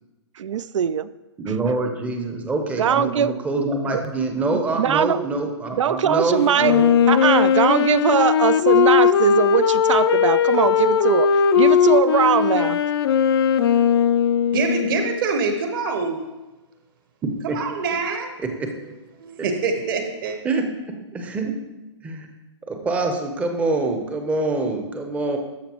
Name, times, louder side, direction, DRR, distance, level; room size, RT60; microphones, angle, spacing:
voice 1, 0.4-1.1 2.8-3.3 3.9-4.0 4.5-5.2 5.8-6.7 7.1-12.8, right 8 dB, 80° right, 17 dB, 0.4 m, -21 dB
voice 2, 1.4-6.9 17.5-17.6 18.4-18.7 20.4-21.5 22.0-22.3 22.7-25.4, right 3 dB, 10° right, 5 dB, 0.6 m, -25 dB
Wind instrument woodwind instrument, 6.6-15.1, left 7 dB, 55° left, 0.4 m, -18 dB
voice 3, 14.5-16.2 17.5-18.3 19.2-20.4, right 4 dB, 45° right, 5 dB, 1.1 m, -25 dB
13.0 x 5.3 x 3.0 m, 1.1 s
hypercardioid pair, 150°, 16 cm